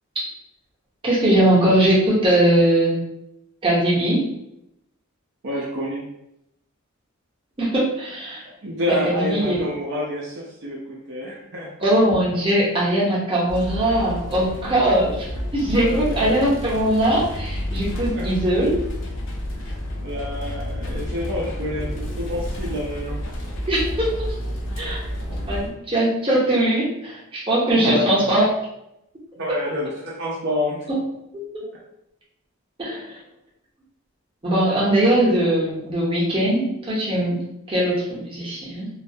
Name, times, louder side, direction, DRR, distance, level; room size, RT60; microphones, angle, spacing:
voice 1, 1.0-3.0 3.6-4.3 7.6-8.4 8.9-9.6 11.8-15.2 15.5-18.7 23.7-24.3 24.8-25.0 25.4-28.4 30.9-31.0 31.3-31.4 32.8-33.0 34.4-38.9, right 1 dB, 25° right, -6 dB, 0.7 m, -20 dB
voice 2, 5.4-6.0 8.6-11.7 14.6-14.9 15.7-16.4 18.1-18.4 19.7-23.2 25.3-25.4 27.7-28.1 29.4-30.9, left 1 dB, 55° right, -5 dB, 0.5 m, -28 dB
sound 1, 13.5-25.7, equal, 60° left, 0.4 m, -30 dB
2.3 x 2.1 x 2.6 m, 0.82 s
head